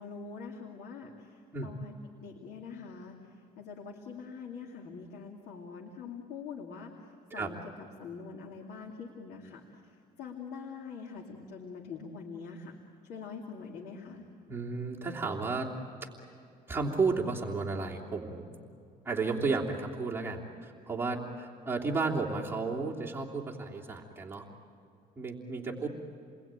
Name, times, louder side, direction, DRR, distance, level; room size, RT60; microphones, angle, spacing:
voice 1, 0.0-2.0 2.2-3.2 3.6-6.9 7.3-7.6 8.0-9.6 10.2-12.7 13.1-14.2 25.7-25.9, left 5 dB, 75° left, 1 dB, 2.7 m, -44 dB
voice 2, 14.5-15.7 16.7-18.6 19.0-24.5 25.2-25.9, right 4 dB, 15° right, -3 dB, 3.1 m, -33 dB
30.0 x 21.5 x 9.0 m, 2.6 s
cardioid pair, 110°, 17 cm